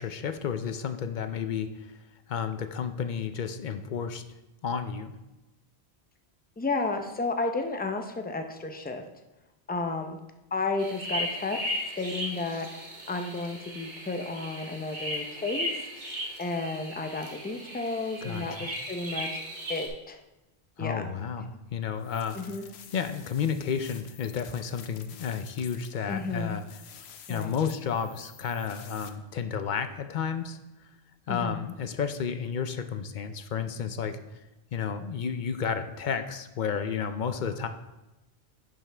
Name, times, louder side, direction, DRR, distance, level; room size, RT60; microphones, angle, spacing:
voice 1, 0.0-2.0 2.3-4.2 4.6-5.1 18.2-18.7 20.8-22.4 22.9-26.6 27.3-30.6 31.3-34.4 34.7-37.7, left 7 dB, 55° left, 9 dB, 0.6 m, -32 dB
voice 2, 6.6-9.0 9.7-10.2 10.5-11.6 11.9-12.8 13.1-15.8 16.4-19.4 19.7-20.2 20.8-21.1 22.3-22.6 26.1-26.6 27.3-27.5 31.3-31.6, left 3 dB, 15° left, 5 dB, 0.4 m, -32 dB
sound 1, 10.8-19.9, equal, 45° right, 1.5 m, -36 dB
sound 2, 22.0-29.1, left 8 dB, 80° left, 0.9 m, -50 dB
10.5 x 5.5 x 3.3 m, 1.0 s
omnidirectional pair, 1.1 m